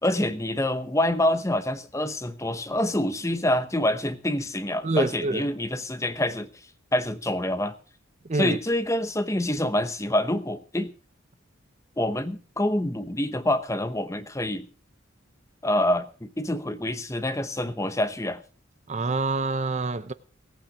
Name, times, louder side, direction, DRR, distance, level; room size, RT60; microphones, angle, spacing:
voice 1, 0.0-6.5 6.9-7.7 8.3-10.9 12.0-14.7 15.6-18.4, left 1 dB, 15° left, 1.0 m, -26 dB
voice 2, 4.8-5.4 8.3-8.6 18.9-20.1, right 3 dB, 35° right, 0.6 m, -26 dB
18.0 x 8.8 x 6.2 m
head